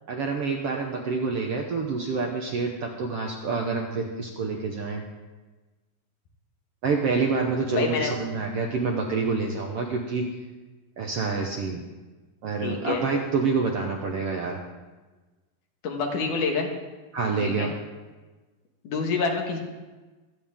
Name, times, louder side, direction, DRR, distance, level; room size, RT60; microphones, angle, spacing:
voice 1, 0.1-5.0 6.8-10.2 11.0-11.8 12.4-14.6 17.1-17.7, right 4 dB, 65° right, 1 dB, 1.6 m, -27 dB
voice 2, 7.7-8.2 12.6-13.0 15.8-16.7 17.4-17.7 18.8-19.6, left 4 dB, 70° left, 2 dB, 3.0 m, -27 dB
25.0 x 9.4 x 3.6 m, 1.2 s
omnidirectional pair, 3.9 m